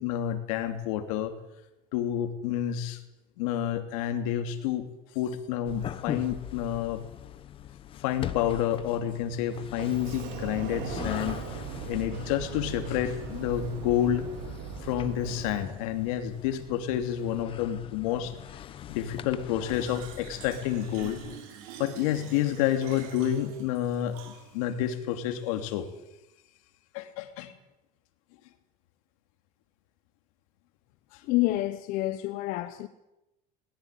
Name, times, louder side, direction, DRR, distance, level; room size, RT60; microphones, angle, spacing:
voice 1, 0.0-1.3 1.9-3.0 3.4-4.9 5.1-7.0 8.0-11.4 11.9-14.3 14.8-18.3 18.9-21.2 21.8-25.9 26.9-27.5 31.1-31.2, left 11 dB, 85° left, 3.0 m, -29 dB
sound 1, 5.6-21.4, left 10 dB, 30° left, 1.1 m, -42 dB
Sliding door, 9.8-15.7, right 8 dB, 70° right, 3.4 m, -38 dB
Fill (with liquid), 19.7-24.7, right 8 dB, 90° right, 6.3 m, -46 dB
voice 2, 31.3-32.9, left 17 dB, 55° left, 1.1 m, -28 dB
20.5 x 20.0 x 9.2 m
cardioid pair, 160°, 17 cm